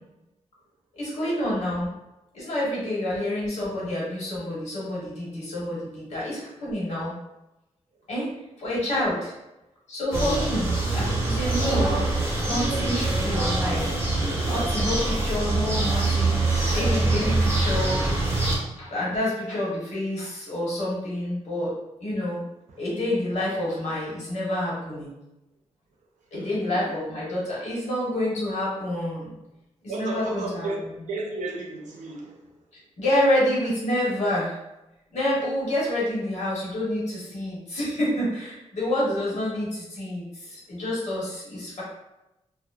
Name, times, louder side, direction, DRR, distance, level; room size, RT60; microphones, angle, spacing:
voice 1, 0.9-1.9 2.3-7.1 8.1-8.3 8.6-9.3 9.9-12.0 12.5-13.9 14.5-18.2 18.8-21.7 22.0-22.4 22.8-25.1 26.3-29.3 29.9-30.9 33.0-34.5 35.1-41.8, left 1 dB, 70° left, -6 dB, 1.0 m, -28 dB
sound 1, 10.1-18.6, right 2 dB, 20° right, 0.6 m, -24 dB
voice 2, 26.3-26.9 29.9-32.5 39.1-39.2, right 3 dB, 90° right, 0 dB, 0.5 m, -34 dB
2.7 x 2.0 x 2.3 m, 0.95 s
wide cardioid pair, 175°, 12 cm